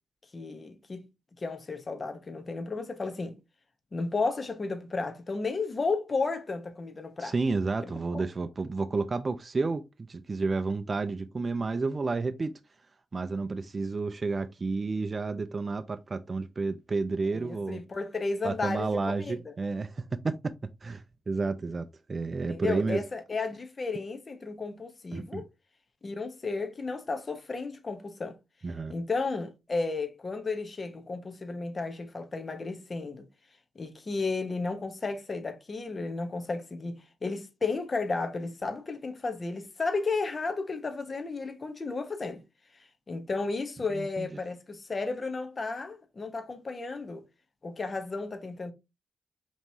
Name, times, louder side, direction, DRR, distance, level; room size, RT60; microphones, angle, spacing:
voice 1, 0.3-1.0 1.4-3.4 3.9-7.3 7.9-8.2 17.3-19.5 22.3-25.5 26.0-28.4 28.9-33.3 33.7-42.4 43.1-47.2 47.6-48.7, left 3 dB, 35° left, 0.9 m, -33 dB
voice 2, 7.2-12.5 13.1-17.8 18.4-20.5 20.8-23.0 25.1-25.4 28.6-28.9 43.9-44.3, right 3 dB, 35° right, 0.4 m, -31 dB
5.2 x 3.0 x 2.7 m
cardioid pair, 80°, 0 cm